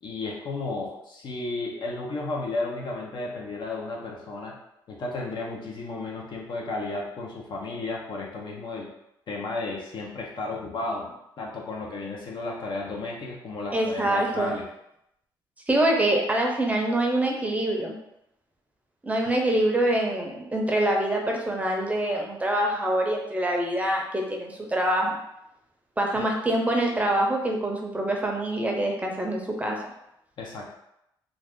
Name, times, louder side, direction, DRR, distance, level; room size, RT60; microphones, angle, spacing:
voice 1, 0.0-4.5 4.9-8.9 9.3-14.6 26.2-26.3 30.4-30.7, left 2 dB, 60° left, -1 dB, 0.7 m, -33 dB
voice 2, 13.7-14.6 15.7-18.0 19.0-25.2 26.0-29.8, right 1 dB, 15° right, 0 dB, 0.6 m, -25 dB
2.5 x 2.4 x 3.5 m, 0.80 s
cardioid pair, 90°, 9 cm